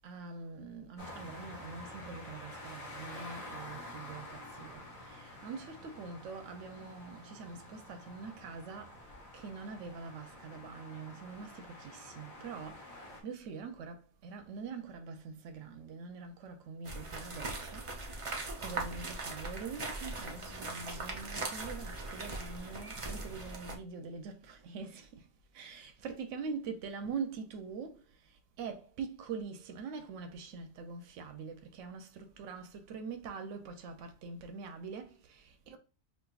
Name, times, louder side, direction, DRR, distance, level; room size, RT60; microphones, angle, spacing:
voice 1, 0.0-25.3 25.5-35.8, right 5 dB, 85° right, 0.9 m, -44 dB
sound 1, 1.0-13.2, left 1 dB, 30° left, 1.0 m, -49 dB
sound 2, 16.8-23.8, right 2 dB, 35° right, 0.6 m, -40 dB
5.2 x 2.5 x 2.3 m
omnidirectional pair, 1.2 m